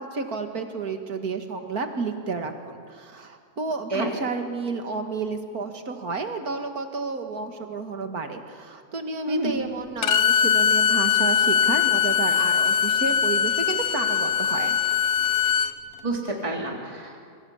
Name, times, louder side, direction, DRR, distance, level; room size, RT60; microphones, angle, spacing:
voice 1, 0.0-14.8, right 4 dB, 70° right, 6 dB, 2.3 m, -31 dB
Bowed string instrument, 10.0-15.7, left 8 dB, 65° left, 1.3 m, -21 dB
voice 2, 16.0-17.2, right 2 dB, 20° right, 0 dB, 3.3 m, -29 dB
27.0 x 23.5 x 7.2 m, 2.1 s
omnidirectional pair, 1.7 m